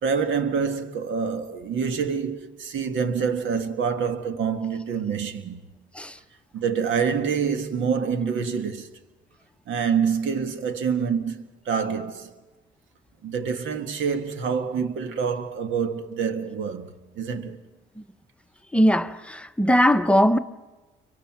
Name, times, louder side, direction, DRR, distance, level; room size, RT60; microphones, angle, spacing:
voice 1, 0.0-5.6 6.5-8.9 9.7-12.3 13.2-17.6, right 6 dB, 75° right, 1.6 m, -26 dB
voice 2, 18.7-20.4, equal, 5° left, 0.8 m, -20 dB
29.5 x 24.0 x 6.0 m
cardioid pair, 90°, 20 cm